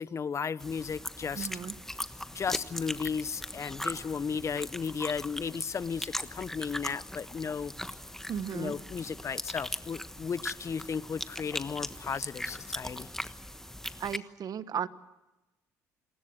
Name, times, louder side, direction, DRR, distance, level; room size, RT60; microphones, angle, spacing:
voice 1, 0.0-1.5 2.3-7.7 8.5-13.1, left 6 dB, 40° left, 18 dB, 0.9 m, -34 dB
sound 1, 0.6-14.2, left 1 dB, 5° left, 1.3 m, -39 dB
voice 2, 1.3-1.7 8.3-8.8 14.0-14.9, right 8 dB, 55° right, 14 dB, 1.2 m, -35 dB
28.0 x 19.5 x 7.9 m, 1.0 s
supercardioid pair, 65°, 8 cm